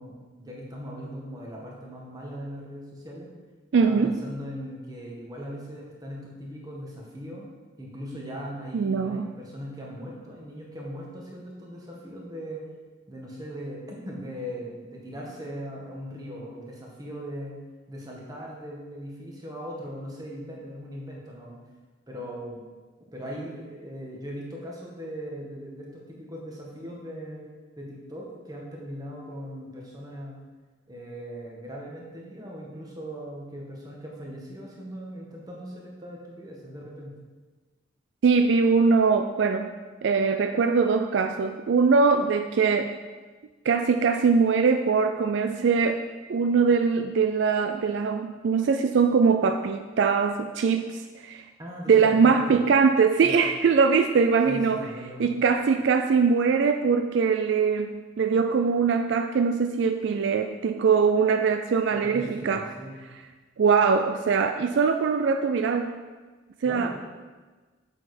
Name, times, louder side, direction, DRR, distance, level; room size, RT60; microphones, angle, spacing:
voice 1, 0.0-3.3 3.8-7.5 7.8-12.6 13.1-17.6 17.9-21.6 22.1-22.6 23.1-27.5 27.7-30.4 30.9-37.1 51.6-52.6 53.2-53.4 54.4-55.4 61.9-63.0 66.6-66.9, equal, 20° right, -3 dB, 1.5 m, -39 dB
voice 2, 3.7-4.1 8.7-9.3 38.2-39.7 40.0-43.0 43.7-46.0 46.3-51.4 51.9-54.8 55.2-62.6 63.6-66.0 66.6-66.9, right 5 dB, 65° right, 7 dB, 0.3 m, -22 dB
7.4 x 6.6 x 4.3 m, 1.3 s
head